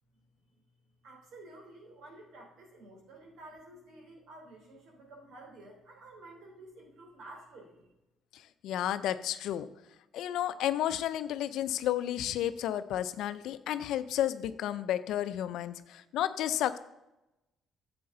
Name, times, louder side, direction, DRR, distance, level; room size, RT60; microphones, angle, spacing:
voice 1, 1.0-7.9, right 2 dB, 75° right, 0 dB, 3.3 m, -51 dB
voice 2, 8.3-9.7 10.1-16.8, left 11 dB, 80° left, 13 dB, 0.5 m, -32 dB
9.5 x 7.8 x 3.8 m, 0.94 s
cardioid pair, 90°, 0 cm